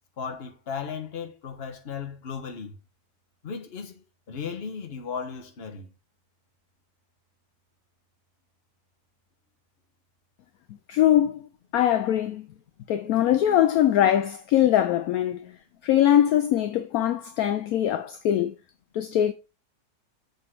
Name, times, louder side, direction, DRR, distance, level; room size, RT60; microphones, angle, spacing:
voice 1, 0.2-2.8 3.4-5.9, left 6 dB, 40° left, 1.3 m, -36 dB
voice 2, 10.9-11.4 11.7-12.5 12.9-15.5 15.8-18.6 18.9-19.3, left 11 dB, 70° left, 1.0 m, -22 dB
7.3 x 4.0 x 4.6 m
omnidirectional pair, 1.7 m